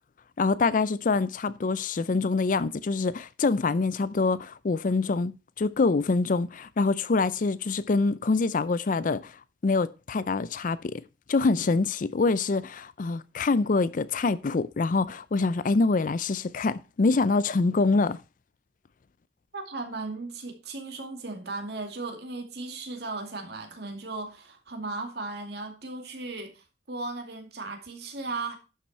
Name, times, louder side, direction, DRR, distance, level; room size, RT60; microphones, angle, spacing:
voice 1, 0.4-9.3 9.6-11.0 11.3-18.2, left 3 dB, 45° left, 0.4 m, -25 dB
voice 2, 19.5-28.5, right 3 dB, 65° right, 2.3 m, -36 dB
11.5 x 5.9 x 4.3 m
head